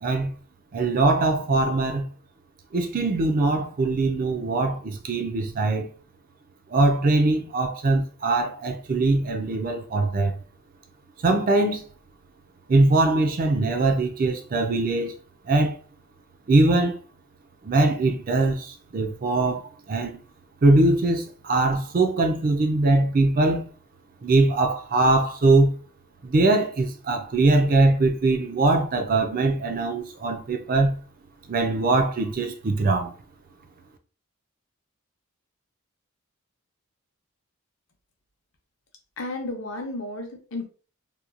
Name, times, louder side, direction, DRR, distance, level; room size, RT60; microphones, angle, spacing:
voice 1, 0.7-2.1 2.7-5.9 6.7-10.3 11.2-11.8 12.7-15.1 15.5-15.8 16.5-17.0 17.6-20.2 20.6-23.6 24.2-25.7 26.2-30.9 31.5-33.1, right 2 dB, 40° right, 0.4 m, -22 dB
voice 2, 39.2-40.7, left 2 dB, 60° left, 0.7 m, -32 dB
2.9 x 2.2 x 2.4 m
head